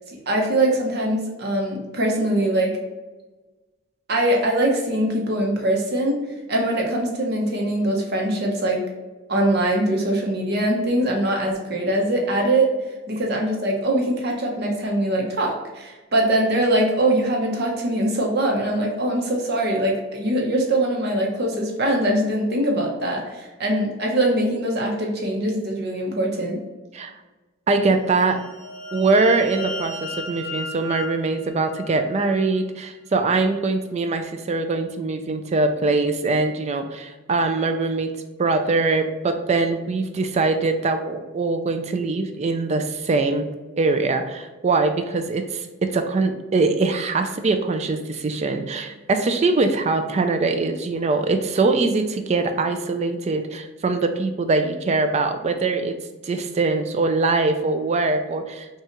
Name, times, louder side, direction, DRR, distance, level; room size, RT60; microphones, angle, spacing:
voice 1, 0.3-2.7 4.1-6.2 6.5-8.8 9.3-12.7 13.1-26.6, right 1 dB, 50° right, 0 dB, 0.8 m, -22 dB
voice 2, 27.7-28.4 28.9-38.1 38.4-43.5 43.8-55.9 56.2-58.7, right 3 dB, 30° right, 7 dB, 0.3 m, -22 dB
sound 1, 28.1-32.6, left 2 dB, 45° left, 0.9 m, -36 dB
5.5 x 2.4 x 2.9 m, 1.2 s
head